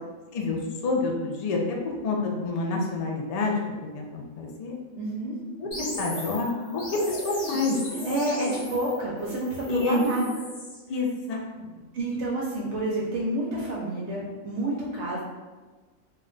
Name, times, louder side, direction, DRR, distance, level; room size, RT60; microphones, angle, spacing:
voice 1, 0.3-3.5 3.9-4.8 5.8-6.5 6.7-7.8 9.7-10.1 10.9-11.4, left 3 dB, 80° left, 0 dB, 0.3 m, -28 dB
voice 2, 5.0-5.4 8.0-10.2 11.9-15.2, right 1 dB, 70° right, -4 dB, 0.8 m, -29 dB
sound 1, 5.7-10.8, left 2 dB, 50° left, 0.9 m, -36 dB
2.4 x 2.2 x 3.7 m, 1.3 s
omnidirectional pair, 1.3 m